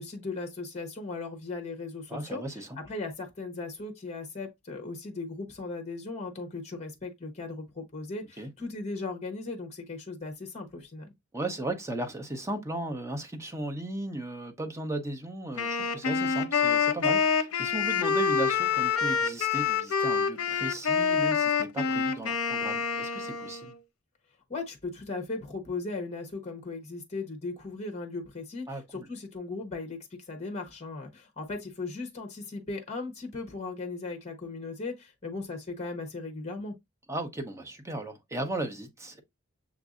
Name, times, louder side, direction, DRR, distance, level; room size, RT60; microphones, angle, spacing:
voice 1, 0.0-11.1 24.5-36.7, left 3 dB, 30° left, 0.9 m, -37 dB
voice 2, 2.1-2.7 8.4-8.5 11.3-23.7 28.7-29.1 37.1-39.2, right 1 dB, 15° right, 0.7 m, -36 dB
Wind instrument woodwind instrument, 15.6-23.7, left 6 dB, 70° left, 0.6 m, -27 dB
7.0 x 2.6 x 2.4 m
head